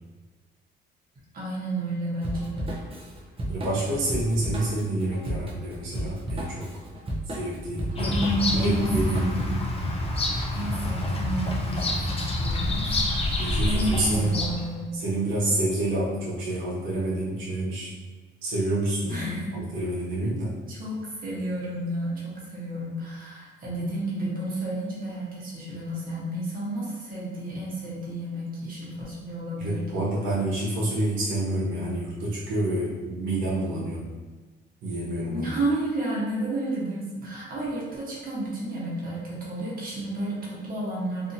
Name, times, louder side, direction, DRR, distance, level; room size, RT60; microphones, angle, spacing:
voice 1, 1.3-2.7 8.0-9.5 9.7-10.0 10.5-13.1 13.6-15.0 19.1-19.5 20.3-30.1 35.3-41.3, right 1 dB, 45° right, -6 dB, 1.1 m, -31 dB
Drum kit / Drum, 2.2-9.5, right 1 dB, 30° right, 0.6 m, -34 dB
voice 2, 3.5-6.8 7.2-8.2 8.5-9.3 13.4-14.3 14.9-17.9 18.4-20.5 29.6-34.0 34.8-35.5, right 1 dB, 85° right, -7 dB, 0.8 m, -28 dB
Bird vocalization bird call bird song, 8.0-14.7, left 2 dB, 30° left, 0.5 m, -27 dB
2.7 x 2.5 x 2.7 m, 1.3 s
cardioid pair, 90°, 20 cm